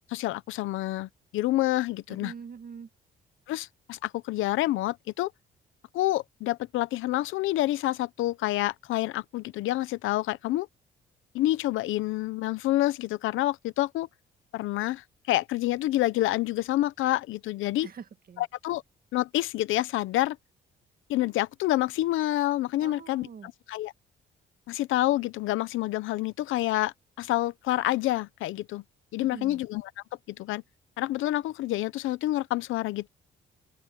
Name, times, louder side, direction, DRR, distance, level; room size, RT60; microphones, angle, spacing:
voice 1, 0.1-2.3 3.5-5.3 5.9-10.7 11.3-14.1 14.5-17.9 18.4-18.8 19.1-20.4 21.1-23.9 24.7-28.8 29.1-29.9 30.3-30.6 31.0-33.1, left 16 dB, 90° left, 0.8 m, -28 dB
voice 2, 2.1-2.9 17.8-18.4 22.8-23.5 29.2-29.6, right 6 dB, 45° right, 1.9 m, -44 dB
open air
cardioid pair, 90°, 20 cm